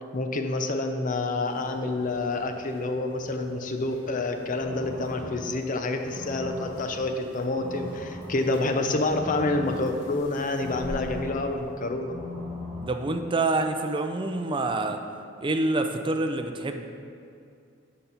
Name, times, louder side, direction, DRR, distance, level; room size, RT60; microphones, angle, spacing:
voice 1, 0.1-12.2, left 2 dB, 45° left, 6 dB, 0.5 m, -28 dB
sound 1, 1.4-11.9, equal, 65° left, 1.5 m, -48 dB
sound 2, 4.4-13.0, left 1 dB, 20° left, 1.6 m, -40 dB
voice 2, 12.8-15.0 15.4-16.8, right 2 dB, 25° right, 6 dB, 0.5 m, -27 dB
7.0 x 5.2 x 5.6 m, 2.4 s
head